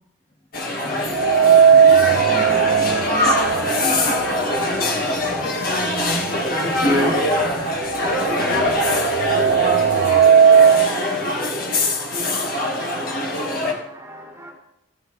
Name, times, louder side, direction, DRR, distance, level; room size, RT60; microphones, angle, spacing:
sound 1, 0.5-13.7, left 1 dB, 50° left, 1.6 m, -23 dB
voice 1, 0.9-1.2 1.4-1.9 2.2-2.3 5.2-7.1 7.5-7.7, equal, 30° left, 0.9 m, -34 dB
sound 2, 1.1-5.2 5.5-5.6 6.6-6.7 7.1-10.9, right 7 dB, 65° right, 0.3 m, -17 dB
voice 2, 1.9-4.1, equal, 5° left, 2.9 m, -35 dB
voice 3, 6.6-7.1 9.0-9.2 12.7-14.5, equal, 15° right, 2.0 m, -31 dB
15.0 x 9.1 x 3.2 m
head